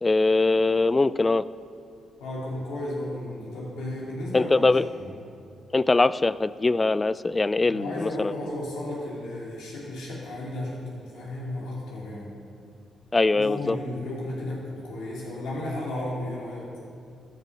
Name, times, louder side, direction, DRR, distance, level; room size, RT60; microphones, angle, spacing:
voice 1, 0.0-1.4 4.3-4.9 5.7-8.3 13.1-13.8, left 3 dB, 30° left, 18 dB, 0.3 m, -22 dB
voice 2, 2.2-5.1 7.7-12.3 13.3-16.8, left 1 dB, 80° left, -5 dB, 2.7 m, -34 dB
13.0 x 5.5 x 6.1 m, 2.5 s
hypercardioid pair, 50°, 0 cm